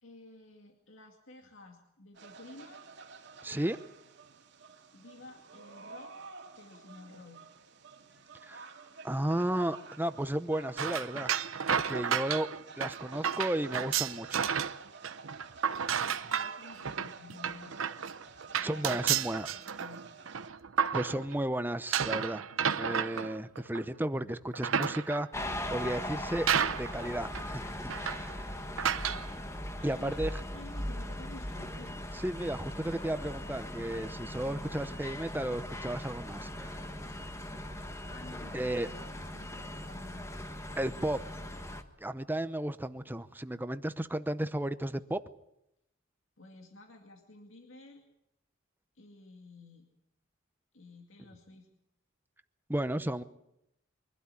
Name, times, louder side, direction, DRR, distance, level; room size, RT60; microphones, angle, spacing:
voice 1, 0.0-2.8 4.9-6.1 6.6-7.5 16.2-17.8 18.6-19.0 19.3-20.1 29.8-30.2 30.5-32.0 38.0-40.3 46.4-48.0 49.0-49.9 50.7-51.7, left 2 dB, 75° left, 2 dB, 2.2 m, -52 dB
sound 1, 2.1-20.5, right 4 dB, 60° right, 2.2 m, -51 dB
voice 2, 3.4-3.8 8.5-8.7 9.0-11.3 11.7-12.5 12.8-14.4 18.6-19.5 20.9-22.4 22.8-26.5 26.8-28.6 29.8-30.3 32.1-36.9 38.5-38.9 40.8-41.3 42.0-45.2 52.7-53.2, right 1 dB, 10° right, 12 dB, 0.7 m, -34 dB
sound 2, 10.8-14.8 15.0-21.4 21.9-23.9 24.4-25.4 26.0-26.1 26.5-27.1 27.3-27.4 27.9-28.3 28.8-29.3, right 8 dB, 85° right, 0.8 m, -32 dB
sound 3, 25.3-41.8, left 1 dB, 15° left, 1.3 m, -40 dB
23.5 x 12.5 x 9.7 m, 0.85 s
head